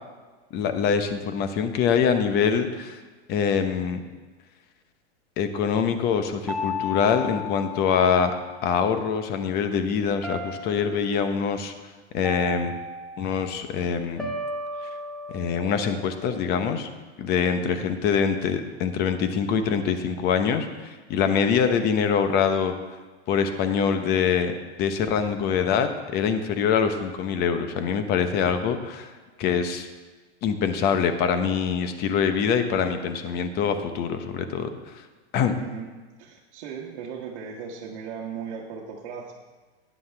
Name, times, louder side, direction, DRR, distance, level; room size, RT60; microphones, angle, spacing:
voice 1, 0.5-3.0 3.3-4.0 5.4-8.3 8.6-11.7 12.1-12.8 13.2-14.3 15.3-16.9 17.2-22.7 23.3-29.1 29.4-29.9 30.4-34.7 35.3-35.5, left 6 dB, 30° left, 9 dB, 0.8 m, -24 dB
sound 1, 6.5-8.8 10.2-11.2 12.2-13.5 14.2-16.6, left 2 dB, ahead, 0.7 m, -35 dB
voice 2, 35.5-35.9 36.2-39.3, right 6 dB, 60° right, -2 dB, 1.3 m, -37 dB
13.0 x 9.5 x 3.4 m, 1.3 s
supercardioid pair, 150°, 33 cm